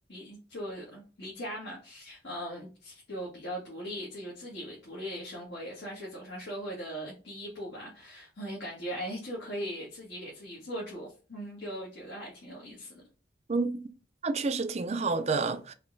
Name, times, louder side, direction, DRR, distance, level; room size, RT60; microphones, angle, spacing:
voice 1, 0.1-13.0, equal, 75° left, 1.7 m, -39 dB
voice 2, 13.5-13.8 14.2-15.7, right 4 dB, 35° right, 0.4 m, -29 dB
4.9 x 3.1 x 3.3 m
head